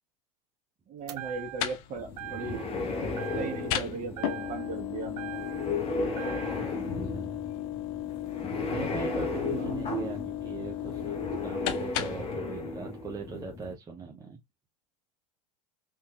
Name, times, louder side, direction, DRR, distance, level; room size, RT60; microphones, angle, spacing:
voice 1, 0.9-2.6 3.3-5.4 9.5-9.8, right 4 dB, 40° right, 1.3 m, -38 dB
sound 1, 1.1-1.8 2.2-2.8 3.2-3.9 4.2-5.8 6.2-6.8, right 13 dB, 85° right, 0.6 m, -42 dB
sound 2, 1.2-12.4, left 13 dB, 65° left, 0.6 m, -36 dB
sound 3, 2.0-13.7, left 2 dB, 30° left, 1.1 m, -35 dB
voice 2, 6.5-7.4 8.7-14.4, right 4 dB, 20° right, 0.7 m, -42 dB
3.7 x 2.6 x 2.4 m
hypercardioid pair, 100°, 20 cm